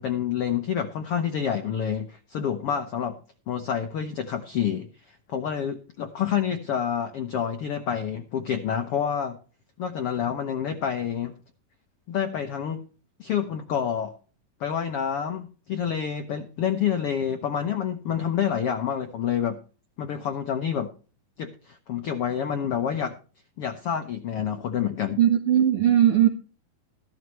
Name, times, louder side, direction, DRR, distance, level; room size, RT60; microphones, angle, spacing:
voice 1, 0.0-3.2 3.5-9.4 9.8-11.3 12.1-12.8 13.2-14.1 14.6-19.6 20.0-20.9 21.4-23.2 23.6-25.2, left 8 dB, 75° left, 1.3 m, -28 dB
voice 2, 25.2-26.3, right 10 dB, 70° right, 1.3 m, -19 dB
14.0 x 13.0 x 3.1 m
omnidirectional pair, 4.0 m